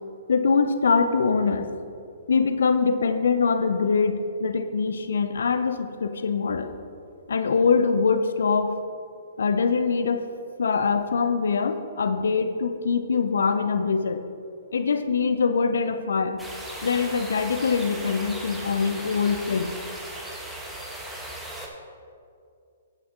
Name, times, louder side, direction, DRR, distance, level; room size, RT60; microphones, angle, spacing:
voice 1, 0.3-1.7 2.3-6.7 7.3-8.7 9.4-10.3 10.6-14.2 14.7-16.4 16.8-19.7, left 5 dB, 70° left, 9 dB, 0.6 m, -23 dB
sound 1, 16.4-21.7, right 1 dB, 5° right, 1.2 m, -37 dB
11.5 x 6.6 x 3.7 m, 2.4 s
hypercardioid pair, 125°, 0 cm